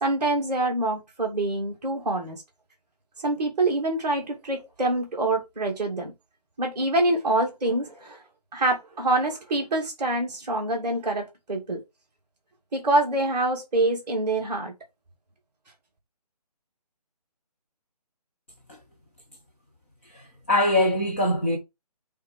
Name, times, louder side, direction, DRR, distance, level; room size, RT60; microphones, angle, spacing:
voice 1, 0.0-2.4 3.2-6.1 6.6-8.2 8.5-11.8 12.7-14.7, right 2 dB, 10° right, 2.1 m, -25 dB
voice 2, 20.1-21.6, left 1 dB, 20° left, 0.9 m, -23 dB
8.6 x 3.7 x 4.5 m
hypercardioid pair, 175°, 20 cm